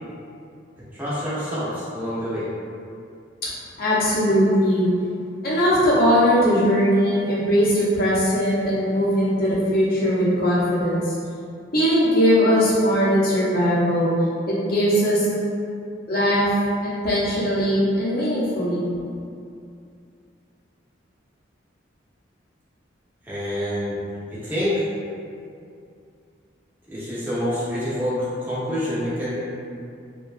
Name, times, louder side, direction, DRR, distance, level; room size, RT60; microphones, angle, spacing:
voice 1, 0.9-2.5 23.3-24.0 24.3-24.8 26.9-29.4, equal, 10° right, -11 dB, 0.6 m, -27 dB
voice 2, 3.8-4.9 5.4-11.2 11.7-14.1 14.5-15.3 16.1-16.5 16.8-18.9, equal, 50° left, -8 dB, 0.7 m, -20 dB
2.8 x 2.2 x 2.4 m, 2.5 s
head